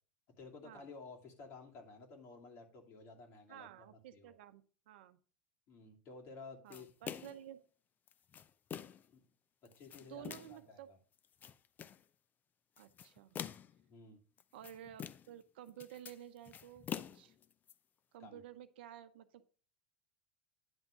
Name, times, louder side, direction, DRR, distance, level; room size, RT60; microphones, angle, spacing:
voice 1, 0.4-3.9 4.1-4.3 5.7-6.9 9.1-9.2 9.8-11.0 13.9-14.2 18.2-18.4, left 4 dB, 50° left, 1 dB, 2.6 m, -53 dB
voice 2, 3.5-5.2 6.6-7.6 10.0-10.9 12.8-13.4 14.5-17.4 18.1-19.5, right 11 dB, 70° right, 11 dB, 0.8 m, -53 dB
sound 1, 6.7-7.5 8.1-9.1 9.7-10.6 11.2-12.0 12.8-13.8 14.4-15.4 15.7-17.7, left 8 dB, 30° left, 0.5 m, -46 dB
9.9 x 3.6 x 6.6 m, 0.39 s
hypercardioid pair, 90°, 6 cm